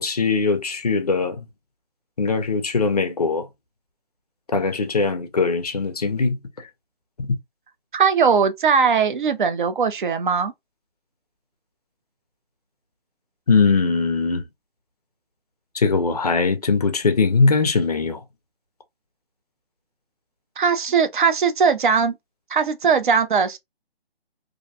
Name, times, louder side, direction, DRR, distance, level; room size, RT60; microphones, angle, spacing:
voice 1, 0.0-1.4 2.2-3.5 4.5-6.4 7.2-7.4 13.5-14.4 15.7-18.2, left 4 dB, 40° left, 0.4 m, -21 dB
voice 2, 7.9-10.5 20.6-22.2 22.5-23.6, right 6 dB, 55° right, 0.5 m, -19 dB
2.5 x 2.1 x 2.6 m
hypercardioid pair, 170°, 30 cm